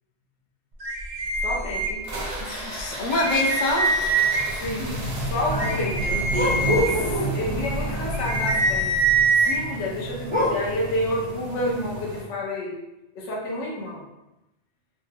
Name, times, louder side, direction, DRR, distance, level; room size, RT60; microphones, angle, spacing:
sound 1, 0.8-2.4 2.8-2.9 3.1-4.7 5.2-9.6, right 3 dB, 50° right, 0.4 m, -24 dB
voice 1, 1.4-2.0 4.6-5.0 5.3-6.0 7.3-9.0 9.3-12.8 13.2-14.0, left 1 dB, 85° left, -3 dB, 0.9 m, -29 dB
sound 2, 2.0-12.2, right 2 dB, 90° right, 1.1 m, -32 dB
voice 2, 2.4-4.0 5.6-6.9, left 1 dB, 55° left, 0 dB, 0.5 m, -27 dB
sound 3, 6.3-7.5 10.2-10.8, left 1 dB, 10° left, 0.6 m, -24 dB
3.1 x 2.1 x 3.2 m, 0.96 s
omnidirectional pair, 1.2 m